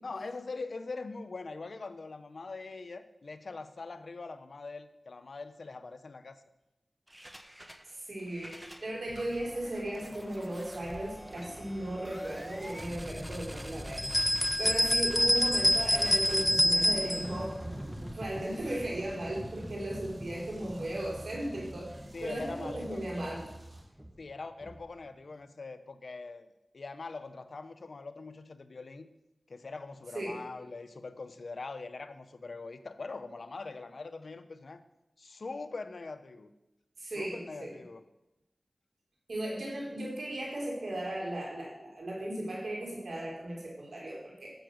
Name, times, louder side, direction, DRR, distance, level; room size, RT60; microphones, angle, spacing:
voice 1, 0.0-6.4 22.1-23.5 24.2-29.1 29.5-34.8 35.2-36.5 37.0-38.0, left 3 dB, 75° left, 10 dB, 0.8 m, -42 dB
sound 1, 7.1-7.9 8.2-25.1, equal, 15° right, 1.2 m, -44 dB
voice 2, 7.8-17.6 18.1-23.4 30.1-30.4 37.0-37.7 39.3-44.5, right 1 dB, 85° right, -3 dB, 4.7 m, -36 dB
sound 2, 14.0-17.3, left 1 dB, 10° left, 0.3 m, -26 dB
sound 3, 16.4-23.8, right 1 dB, 50° right, 5.7 m, -50 dB
13.0 x 7.1 x 6.5 m, 0.91 s
wide cardioid pair, 55°, 0 cm